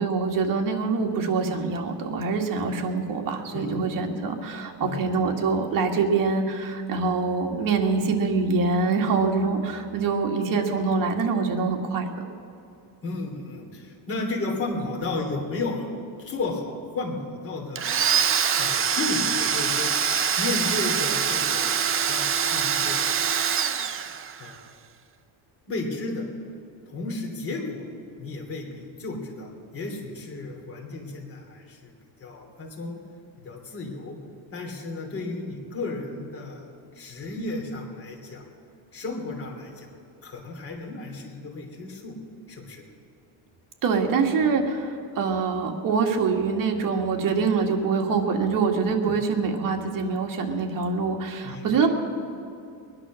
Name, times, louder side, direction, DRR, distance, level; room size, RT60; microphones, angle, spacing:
voice 1, 0.0-12.3 43.8-51.9, right 4 dB, 45° right, 2 dB, 1.9 m, -25 dB
voice 2, 3.5-3.9 4.8-5.0 13.0-15.9 16.2-17.9 18.6-19.9 20.4-23.4 24.4-24.6 25.7-26.3 26.9-27.8 28.2-31.9 32.2-33.0 33.4-34.2 34.5-36.7 36.9-38.4 38.9-39.9 40.2-42.1 42.5-42.8 49.0-49.1 51.4-51.9, left 3 dB, 30° left, 0 dB, 3.1 m, -33 dB
Domestic sounds home sounds, 17.8-24.5, right 7 dB, 30° right, 0.6 m, -24 dB
21.5 x 10.5 x 6.3 m, 2.5 s
cardioid pair, 150°, 45 cm